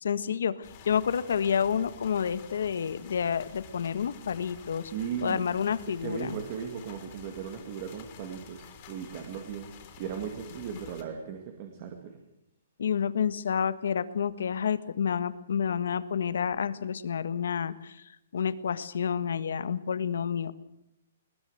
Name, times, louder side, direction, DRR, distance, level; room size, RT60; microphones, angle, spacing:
voice 1, 0.0-4.9 5.2-6.4 12.8-20.5, left 7 dB, 70° left, 14 dB, 1.5 m, -29 dB
sound 1, 0.6-11.0, left 7 dB, 25° left, 3.8 m, -50 dB
voice 2, 4.9-5.4 6.0-12.2, right 7 dB, 30° right, 4 dB, 2.1 m, -37 dB
21.0 x 20.0 x 8.0 m, 0.82 s
hypercardioid pair, 175°, 0 cm